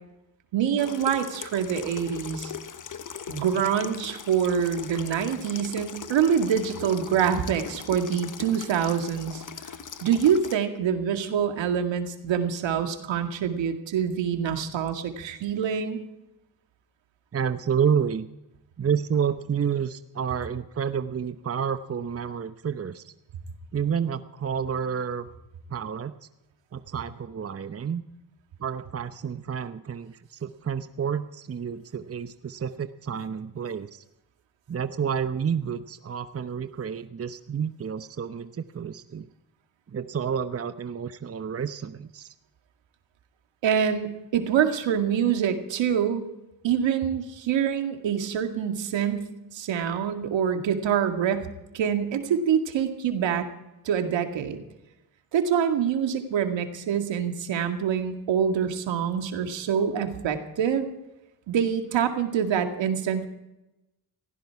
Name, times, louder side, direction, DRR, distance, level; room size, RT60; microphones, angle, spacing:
voice 1, 0.5-2.5 3.3-9.4 10.0-16.0 43.6-46.3 46.6-53.5 53.8-54.6 55.3-60.9 61.5-63.3, right 8 dB, 75° right, 6 dB, 2.2 m, -25 dB
Water tap faucet / Sink (filling or washing), 0.8-10.6, left 7 dB, 45° left, 1.3 m, -40 dB
voice 2, 17.3-18.3 18.8-23.1 23.7-25.3 25.7-26.1 26.7-28.0 28.6-34.0 34.7-39.3 39.9-42.3, right 7 dB, 30° right, 11 dB, 0.9 m, -29 dB
17.5 x 15.5 x 4.7 m, 0.94 s
supercardioid pair, 60°, 45 cm